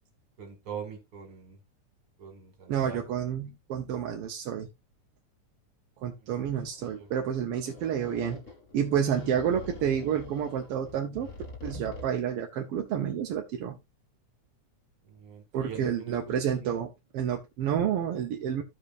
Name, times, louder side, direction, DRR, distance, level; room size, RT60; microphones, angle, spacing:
voice 1, 0.4-1.6 2.2-3.1 6.2-7.1 15.0-16.8, right 7 dB, 45° right, 4 dB, 2.9 m, -43 dB
voice 2, 2.7-4.7 6.0-8.4 8.7-11.3 11.6-13.8 15.5-18.6, right 8 dB, 65° right, 2 dB, 1.5 m, -29 dB
sound 1, 6.3-12.1, left 3 dB, 30° left, 1.8 m, -45 dB
15.0 x 5.0 x 2.5 m, 0.22 s
omnidirectional pair, 3.4 m